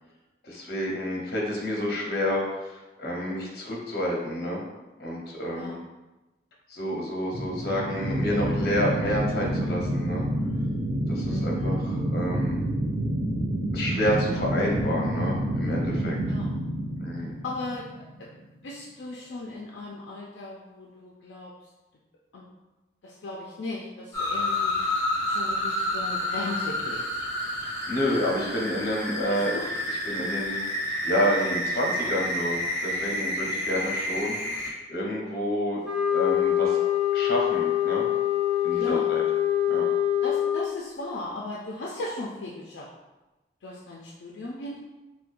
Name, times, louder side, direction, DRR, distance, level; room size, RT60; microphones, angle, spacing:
voice 1, 0.4-4.6 5.0-5.8 6.7-10.3 11.1-12.6 13.7-16.2 17.0-17.4 27.9-29.6 29.9-35.8 36.1-36.8 37.1-38.0 38.6-39.2 39.7-39.8, equal, 55° left, -2 dB, 0.8 m, -29 dB
sound 1, 7.3-18.2, right 1 dB, 90° right, 0.6 m, -28 dB
voice 2, 11.3-11.8 16.3-16.6 17.4-17.9 18.2-18.3 18.6-21.5 22.3-22.4 23.0-24.8 25.2-27.0 29.3-29.6 38.7-39.1 40.2-42.9 43.6-44.8, left 2 dB, 75° left, -3 dB, 0.4 m, -37 dB
sound 2, 24.1-34.7, left 1 dB, 20° left, 0.9 m, -29 dB
sound 3, 35.8-40.7, left 11 dB, 5° right, 0.4 m, -24 dB
4.2 x 2.2 x 2.5 m, 1.1 s
head